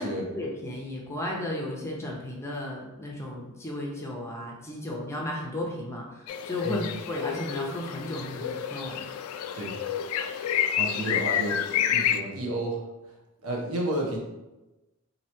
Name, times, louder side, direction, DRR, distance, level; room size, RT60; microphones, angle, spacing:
voice 1, 0.0-9.0, left 1 dB, 10° left, -2 dB, 0.5 m, -34 dB
sound 1, 6.3-12.2, left 9 dB, 85° left, 0.3 m, -29 dB
voice 2, 10.7-12.8 13.4-14.2, right 1 dB, 75° right, 0 dB, 0.9 m, -31 dB
2.9 x 2.7 x 4.3 m, 1.0 s
head